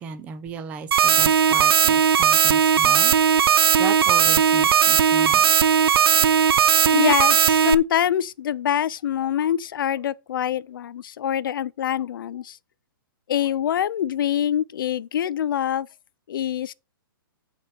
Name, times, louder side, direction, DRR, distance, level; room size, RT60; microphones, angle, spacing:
voice 1, 0.0-3.1 3.8-5.5, right 6 dB, 10° right, 0.5 m, -35 dB
sound 1, 0.9-7.7, right 8 dB, 80° right, 0.5 m, -17 dB
voice 2, 6.9-12.6 13.3-15.9 16.3-16.7, left 10 dB, 65° left, 0.5 m, -25 dB
8.1 x 4.2 x 6.7 m
hypercardioid pair, 175°, 12 cm